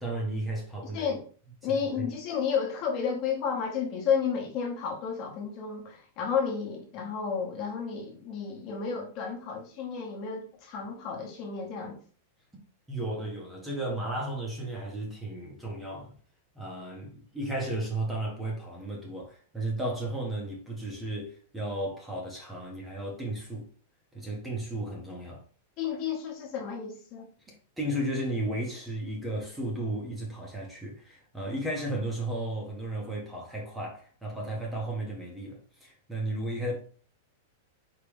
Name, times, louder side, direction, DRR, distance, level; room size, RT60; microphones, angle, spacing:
voice 1, 0.0-1.1 1.6-2.1 12.9-16.1 16.6-23.7 24.1-25.4 27.5-36.8, right 1 dB, 5° right, 0.8 m, -34 dB
voice 2, 1.6-12.0 25.8-27.3, left 6 dB, 35° left, 1.1 m, -32 dB
4.6 x 2.9 x 3.5 m
supercardioid pair, 170°, 0 cm